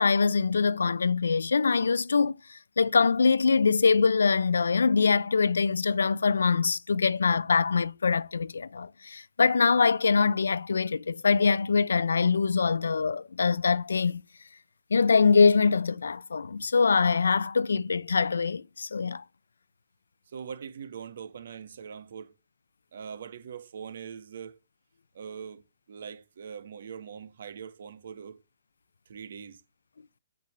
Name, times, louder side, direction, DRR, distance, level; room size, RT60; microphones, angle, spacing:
voice 1, 0.0-14.2 14.9-19.2, left 5 dB, 85° left, 0.5 m, -24 dB
voice 2, 20.3-22.4 22.9-24.6 25.1-25.6 25.9-28.4 29.1-29.6, right 7 dB, 70° right, 1.6 m, -42 dB
8.1 x 6.8 x 6.2 m
hypercardioid pair, 140°, 0 cm